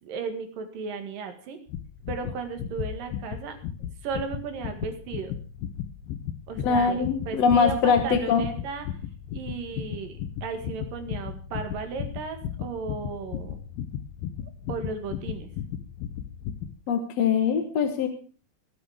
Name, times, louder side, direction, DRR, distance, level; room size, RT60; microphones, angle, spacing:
voice 1, 0.0-1.6 2.1-3.6 4.0-5.3 6.5-8.9 9.3-13.6 14.7-15.5, right 5 dB, 70° right, 7 dB, 3.6 m, -35 dB
sound 1, 1.7-16.8, left 9 dB, 85° left, 2.8 m, -35 dB
voice 2, 6.6-8.4 16.9-18.1, left 6 dB, 60° left, 6 dB, 2.0 m, -22 dB
19.5 x 8.6 x 4.9 m, 0.41 s
omnidirectional pair, 4.2 m